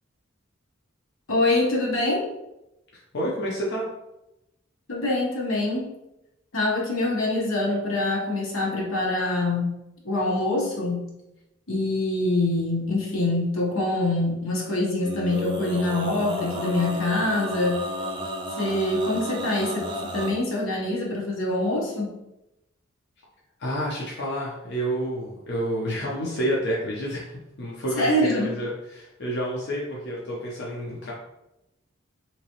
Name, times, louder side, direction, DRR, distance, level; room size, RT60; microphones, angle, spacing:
voice 1, 1.3-2.3 4.9-5.9 6.5-9.8 10.0-11.2 11.7-17.8 18.6-19.9 20.1-22.1 28.0-28.5, left 2 dB, 85° left, -3 dB, 1.1 m, -25 dB
voice 2, 2.9-3.9 23.6-31.1, equal, 55° left, -4 dB, 0.7 m, -29 dB
Male singing, 15.0-20.3, equal, 25° right, 0.5 m, -32 dB
3.5 x 3.0 x 2.9 m, 0.89 s
head